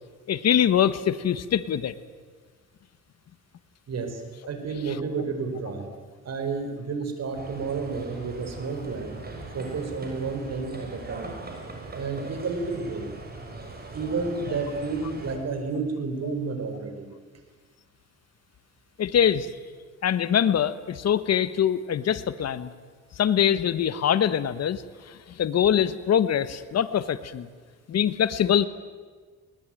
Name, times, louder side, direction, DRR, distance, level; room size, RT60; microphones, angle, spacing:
voice 1, 0.3-1.9 19.0-19.5 20.0-22.7 23.2-24.8 25.1-27.5 27.9-28.7, left 9 dB, 55° left, 14 dB, 1.3 m, -23 dB
voice 2, 3.9-4.2 4.5-5.9 6.2-9.2 9.5-11.4 11.9-13.1 13.9-17.1, right 4 dB, 55° right, 7 dB, 4.8 m, -31 dB
sound 1, 7.3-15.4, right 3 dB, 30° right, 5.8 m, -40 dB
21.5 x 20.0 x 9.1 m, 1.5 s
cardioid pair, 90°, 30 cm